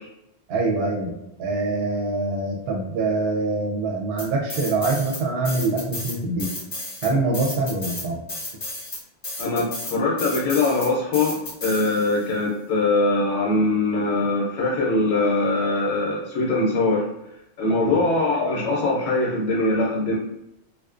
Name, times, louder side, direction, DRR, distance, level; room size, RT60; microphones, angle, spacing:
voice 1, 0.5-6.5 7.0-8.2 17.8-18.0, right 3 dB, 65° right, 0 dB, 0.7 m, -24 dB
sound 1, 4.2-5.2 5.5-12.3, left 2 dB, 40° left, 0.6 m, -33 dB
voice 2, 9.4-17.1 17.6-20.1, left 2 dB, 85° left, -3 dB, 0.9 m, -22 dB
2.5 x 2.1 x 2.4 m, 0.88 s
omnidirectional pair, 1.2 m